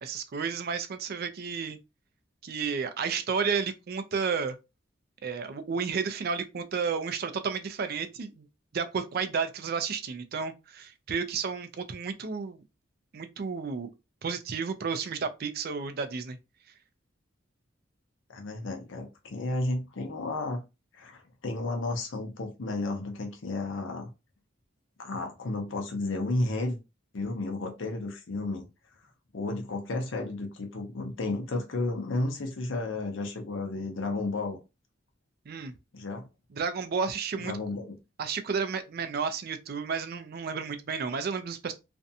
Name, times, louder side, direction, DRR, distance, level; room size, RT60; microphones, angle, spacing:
voice 1, 0.0-1.8 2.4-4.6 5.2-8.5 8.7-12.6 13.1-13.9 14.2-16.4 35.5-35.7 36.5-37.5 38.2-41.7, right 5 dB, 55° right, 0.4 m, -32 dB
voice 2, 18.3-20.6 20.9-24.1 25.0-26.8 27.1-28.6 29.3-34.6 35.9-36.3 37.4-37.9, left 2 dB, 80° left, 0.6 m, -32 dB
2.5 x 2.2 x 2.7 m
head